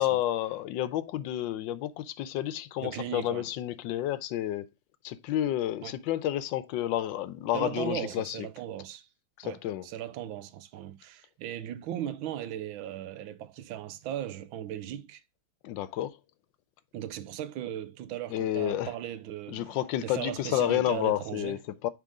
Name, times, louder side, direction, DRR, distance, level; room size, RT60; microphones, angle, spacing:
voice 1, 0.0-4.7 5.0-8.4 9.4-9.9 15.6-16.2 18.3-18.9 19.5-21.9, left 13 dB, 75° left, 1.3 m, -30 dB
voice 2, 2.8-3.5 5.8-6.0 7.5-9.1 9.4-15.2 16.9-21.6, right 11 dB, 85° right, 1.4 m, -37 dB
6.5 x 3.7 x 4.7 m
omnidirectional pair, 2.1 m